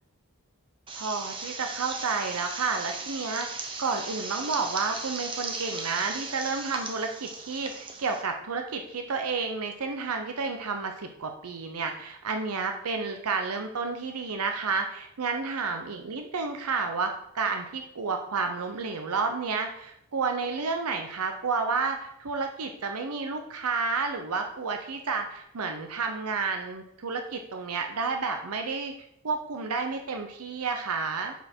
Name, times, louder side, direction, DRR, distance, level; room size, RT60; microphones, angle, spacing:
sound 1, 0.9-8.2, right 3 dB, 25° right, 0.8 m, -37 dB
voice 1, 0.9-28.9 29.2-31.3, right 4 dB, 85° right, 5 dB, 0.7 m, -31 dB
6.5 x 5.5 x 4.5 m, 0.75 s
head